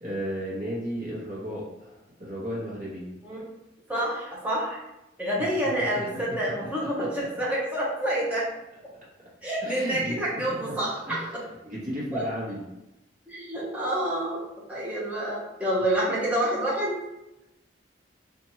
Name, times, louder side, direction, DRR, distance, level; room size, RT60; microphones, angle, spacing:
voice 1, 0.0-1.9 2.2-3.1 5.4-5.5 5.8-6.4 6.6-7.3 9.6-10.8 11.1-11.3 11.6-12.6, equal, 45° right, -5 dB, 1.0 m, -34 dB
voice 2, 3.9-4.8 5.2-8.5 9.4-11.2 12.1-12.2 13.3-14.4 14.7-17.0, right 1 dB, 10° right, -7 dB, 0.8 m, -28 dB
3.0 x 2.5 x 2.7 m, 0.92 s
head